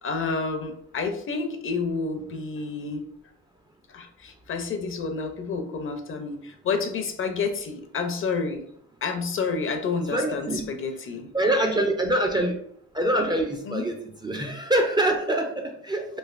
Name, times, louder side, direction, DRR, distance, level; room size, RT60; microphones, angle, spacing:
voice 1, 0.0-3.0 3.9-8.7 9.0-11.3 13.7-13.8, left 4 dB, 45° left, 6 dB, 0.5 m, -29 dB
voice 2, 10.1-10.7 11.3-12.6 12.9-14.0 14.2-16.2, right 1 dB, 15° right, 2 dB, 0.3 m, -24 dB
3.2 x 2.4 x 2.4 m, 0.68 s
cardioid pair, 90°, 30 cm